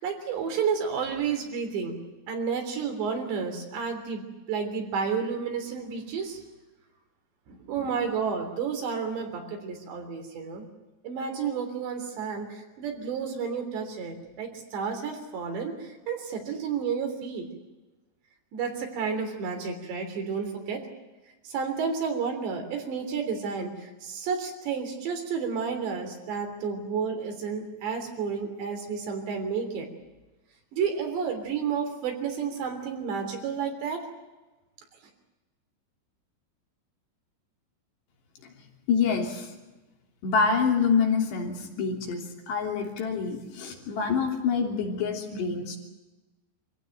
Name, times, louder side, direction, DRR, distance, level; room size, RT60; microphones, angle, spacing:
voice 1, 0.0-2.0 2.3-6.4 7.5-10.7 11.0-17.5 18.5-20.9 21.4-29.9 30.7-34.1, right 6 dB, 75° right, 4 dB, 5.6 m, -31 dB
voice 2, 38.9-39.5 40.2-45.8, left 5 dB, 70° left, 1 dB, 5.2 m, -26 dB
26.0 x 16.0 x 9.1 m, 1.1 s
omnidirectional pair, 5.1 m